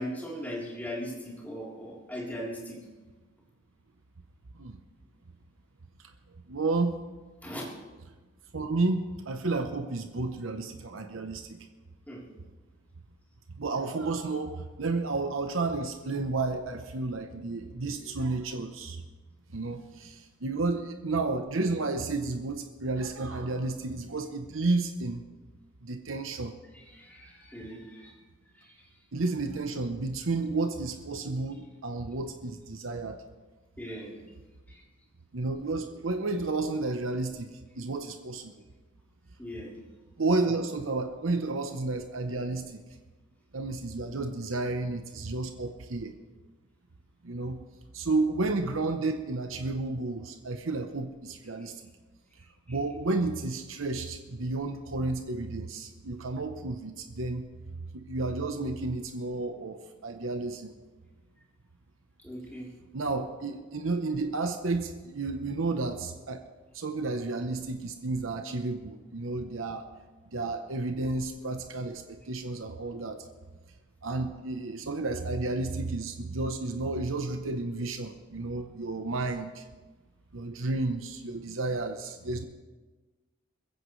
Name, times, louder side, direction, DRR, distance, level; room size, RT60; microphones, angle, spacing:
voice 1, 0.0-2.8 7.4-7.6 12.1-12.2 26.9-28.1 28.6-28.7 33.8-34.1 34.7-34.8 39.4-39.7 52.7-52.8 62.2-62.7, equal, 10° left, -6 dB, 3.6 m, -39 dB
voice 2, 6.5-7.0 8.5-11.6 13.6-19.0 19.5-25.2 25.8-26.5 29.1-33.2 35.3-38.5 40.2-42.8 43.5-46.1 47.2-47.6 47.9-51.9 52.7-57.5 57.9-60.7 62.9-66.4 66.7-69.9 70.3-73.3 74.0-79.6 80.3-82.5, right 3 dB, 85° right, 6 dB, 0.9 m, -31 dB
21.5 x 15.5 x 3.2 m, 1.3 s
head